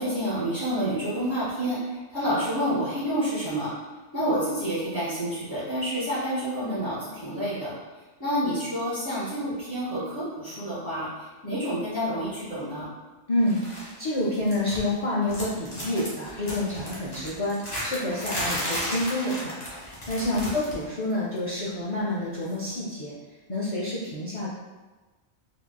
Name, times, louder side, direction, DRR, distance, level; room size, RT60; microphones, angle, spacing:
voice 1, 0.0-3.7 4.1-7.7 8.2-12.9 20.2-20.5, equal, 15° left, -17 dB, 1.5 m, -29 dB
voice 2, 13.3-23.1 23.5-24.5, left 1 dB, 55° left, -7 dB, 0.3 m, -28 dB
sound 1, 13.5-13.9 14.2-15.0 15.3-20.8 21.1-21.4 22.5-22.6, equal, 35° left, 1.1 m, -34 dB
3.7 x 2.6 x 2.2 m, 1.3 s
omnidirectional pair, 1.2 m